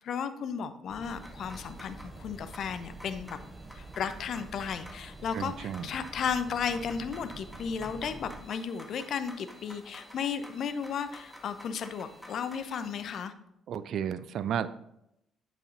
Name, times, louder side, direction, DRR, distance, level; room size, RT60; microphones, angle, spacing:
voice 1, 0.0-3.4 3.7-13.3, left 7 dB, 50° left, 11 dB, 0.6 m, -34 dB
Boat Water vehicle, 0.9-8.4, right 2 dB, 20° right, 0.9 m, -47 dB
sound 1, 1.0-13.2, equal, ahead, 1.5 m, -51 dB
voice 2, 5.3-5.9 13.7-14.7, right 9 dB, 55° right, 15 dB, 0.4 m, -32 dB
9.2 x 8.2 x 2.7 m, 0.80 s
figure-of-eight pair, 45°, 0 cm